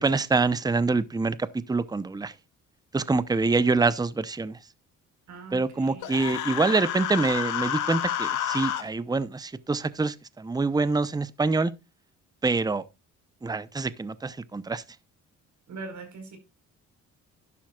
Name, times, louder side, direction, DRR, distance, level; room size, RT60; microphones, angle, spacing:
voice 1, 0.0-2.3 2.9-4.6 5.5-11.7 12.4-12.8 13.4-14.8, right 3 dB, 15° right, 0.8 m, -25 dB
voice 2, 5.3-6.1 15.7-16.4, right 3 dB, 65° right, 4.6 m, -41 dB
Human voice, 6.0-8.8, left 10 dB, 90° left, 1.8 m, -29 dB
12.0 x 11.0 x 2.4 m
cardioid pair, 90°, 30 cm